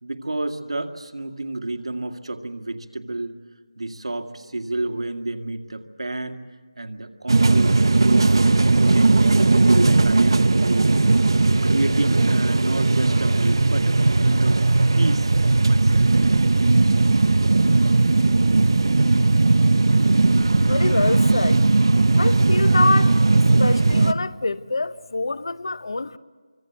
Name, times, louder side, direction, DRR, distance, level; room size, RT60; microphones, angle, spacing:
voice 1, 0.0-3.3 3.8-6.4 6.8-10.7 11.6-14.6 15.0-16.1, right 2 dB, 85° right, 2.0 m, -30 dB
sound 1, 7.3-24.1, right 3 dB, 50° right, 0.8 m, -17 dB
voice 2, 20.6-21.6 22.2-23.2 23.6-26.2, left 3 dB, 55° left, 0.8 m, -25 dB
26.5 x 24.5 x 8.1 m
figure-of-eight pair, 175°, 3 cm